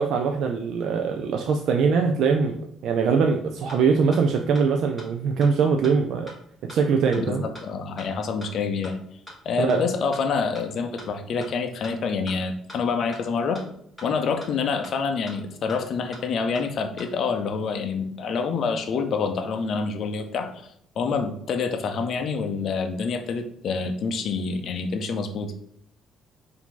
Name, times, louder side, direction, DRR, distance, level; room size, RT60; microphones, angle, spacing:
voice 1, 0.0-2.6 2.8-6.3 6.7-7.4 9.6-9.8, right 5 dB, 65° right, 3 dB, 0.4 m, -22 dB
sound 1, 3.3-3.4 3.7-3.8 4.1-4.2 4.5-4.6 5.0-5.1 5.4-5.5 5.8-5.9 6.3-6.4 6.7-6.8 7.1-7.2 7.5-7.6 8.0-8.1 8.4-8.5 8.8-8.9 9.3-9.4 9.7-9.8 10.1-10.2 10.5-10.6 11.0-11.1 11.4-11.5 11.8-11.9 12.3-12.4 12.7-12.8 13.1-13.2 13.5-13.6 14.0-14.1 14.4-14.5 14.8-14.9 15.3-15.4 15.7-15.8 16.1-16.2 16.5-16.6 17.0-17.1, left 1 dB, 5° right, 1.6 m, -41 dB
voice 2, 7.2-9.0 9.4-13.6 14.0-20.7 21.0-25.5, left 5 dB, 55° left, 6 dB, 0.5 m, -27 dB
4.8 x 2.7 x 3.8 m, 0.71 s
cardioid pair, 120°, 0 cm